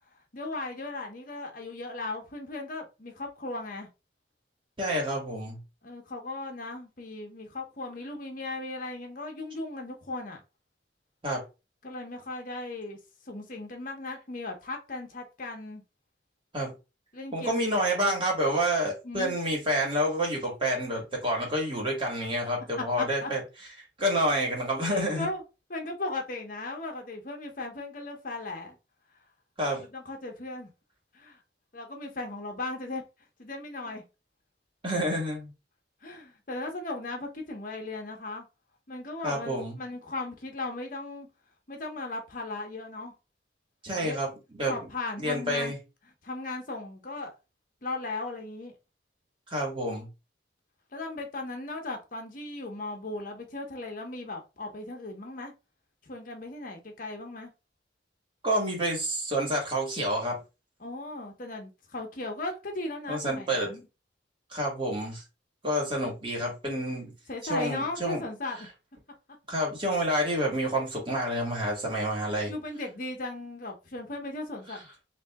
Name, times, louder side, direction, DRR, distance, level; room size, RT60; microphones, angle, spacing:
voice 1, 0.3-3.9 5.8-10.4 11.8-13.0 13.3-15.8 17.1-18.1 19.0-19.4 22.8-23.3 24.8-25.4 25.7-28.8 29.7-30.7 31.1-31.4 31.7-33.0 33.4-34.0 36.0-38.4 38.9-41.3 41.7-43.1 43.9-44.2 44.7-45.7 46.2-47.3 47.8-48.8 50.9-55.5 56.0-57.5 60.8-63.8 67.3-68.7 72.5-74.9, left 2 dB, 50° left, 1.0 m, -37 dB
voice 2, 4.8-5.6 11.2-11.4 16.5-16.7 17.3-23.4 24.0-25.3 29.6-29.8 34.8-35.5 39.2-39.8 43.8-44.3 44.5-44.8 45.2-45.8 49.5-50.1 58.4-60.4 63.1-63.7 64.5-65.2 65.6-67.1 67.5-68.3 69.5-72.5, equal, 30° right, 1.7 m, -28 dB
3.5 x 2.7 x 3.5 m
head